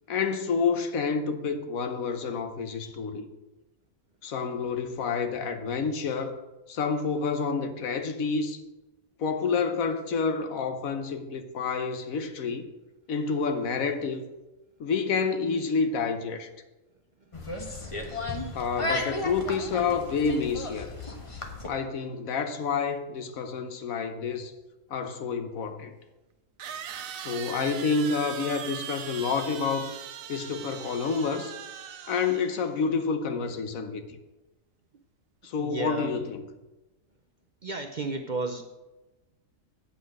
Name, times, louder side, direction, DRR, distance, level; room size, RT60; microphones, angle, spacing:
voice 1, 0.1-3.3 4.2-6.4 6.7-8.6 9.2-12.7 13.1-14.2 14.8-16.5 18.5-20.9 21.7-24.5 24.9-26.0 27.2-29.9 30.3-31.5 32.1-34.0 35.4-36.4, left 5 dB, 80° left, 1.3 m, -29 dB
sound 1, 17.3-21.7, left 1 dB, 25° left, 1.2 m, -34 dB
sound 2, 25.0-25.1 26.6-32.7, right 8 dB, 80° right, 1.1 m, -40 dB
voice 2, 35.6-36.1 37.6-38.6, right 3 dB, 45° right, 0.6 m, -33 dB
8.6 x 5.4 x 7.9 m
omnidirectional pair, 1.4 m